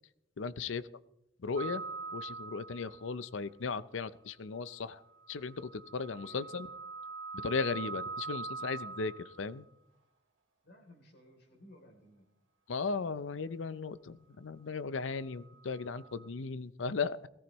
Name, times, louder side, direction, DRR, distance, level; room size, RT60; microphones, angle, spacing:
voice 1, 0.4-0.8 1.4-1.8 2.1-5.0 5.3-6.7 7.4-9.7 12.7-17.3, left 4 dB, 90° left, 16 dB, 0.6 m, -36 dB
sound 1, 1.6-3.2 5.2-9.5 15.5-16.3, right 4 dB, 85° right, 2.0 m, -43 dB
voice 2, 6.0-6.6 10.6-12.3, left 1 dB, 60° left, 2 dB, 3.3 m, -58 dB
21.5 x 14.5 x 3.1 m, 0.83 s
head